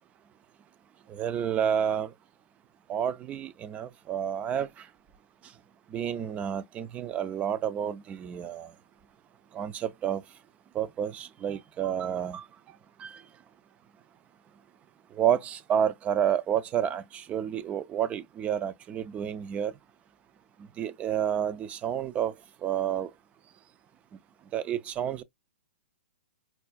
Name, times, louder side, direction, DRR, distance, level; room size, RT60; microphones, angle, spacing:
voice 1, 1.1-2.1 2.9-4.7 5.9-8.7 9.5-10.2 10.8-12.4 13.0-13.1 15.2-19.7 20.8-22.3 22.6-23.1 24.5-25.2, right 9 dB, 20° right, 0.3 m, -29 dB
4.6 x 2.3 x 2.3 m
hypercardioid pair, 140°, 7 cm